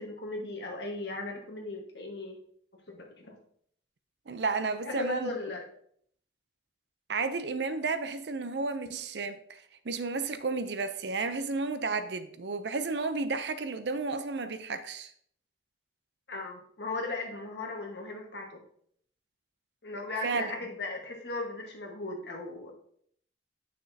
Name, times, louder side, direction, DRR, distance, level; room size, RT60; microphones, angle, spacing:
voice 1, 0.0-2.4 2.9-3.4 4.8-5.6 16.3-18.6 19.8-22.7, left 2 dB, 80° left, 1.6 m, -37 dB
voice 2, 4.3-5.3 7.1-15.1 20.2-20.5, right 4 dB, 80° right, 0.6 m, -32 dB
9.4 x 6.1 x 2.8 m
head